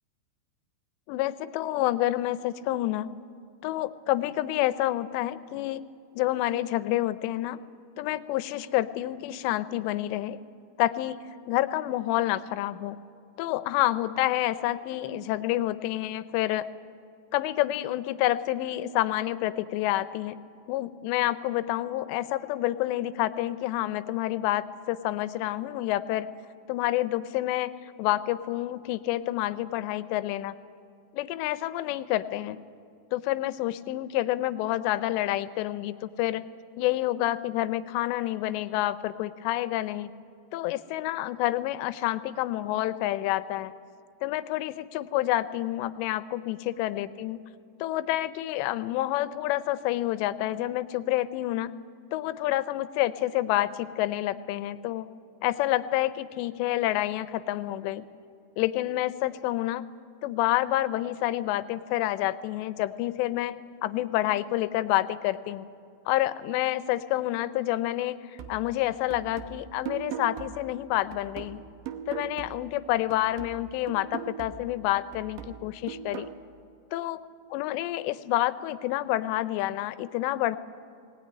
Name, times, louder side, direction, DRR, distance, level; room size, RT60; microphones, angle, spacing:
voice 1, 1.1-3.1 3.6-5.9 6.1-7.6 8.0-10.4 10.8-13.0 13.4-16.7 17.3-20.4 20.7-26.3 26.7-30.5 31.2-32.6 33.1-36.4 36.8-40.1 40.5-43.7 44.2-47.4 47.8-51.7 52.1-55.1 55.4-58.1 58.6-59.9 60.2-65.7 66.1-71.6 72.1-76.3 76.9-77.2 77.5-80.6, left 15 dB, 90° left, 14 dB, 2.9 m, -28 dB
sound 1, 68.4-72.8 73.1-76.4, right 9 dB, 70° right, 2.2 m, -40 dB
20.5 x 18.5 x 9.6 m, 2.4 s
omnidirectional pair, 4.9 m